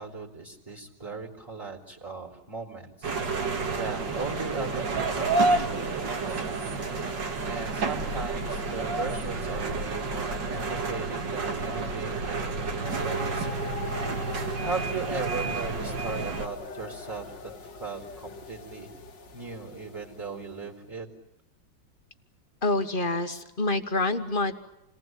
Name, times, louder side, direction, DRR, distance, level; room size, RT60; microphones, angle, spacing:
voice 1, 0.0-6.5 7.5-13.6 14.1-17.5 17.8-18.9 19.3-21.1, right 4 dB, 15° right, 0 dB, 3.1 m, -38 dB
sound 1, 3.0-16.5, right 3 dB, 80° right, 2.6 m, -30 dB
sound 2, 12.8-20.7, left 3 dB, 75° left, 2.3 m, -41 dB
voice 2, 22.6-24.5, left 2 dB, 30° left, 8 dB, 1.5 m, -27 dB
28.5 x 19.5 x 9.1 m, 0.89 s
omnidirectional pair, 1.9 m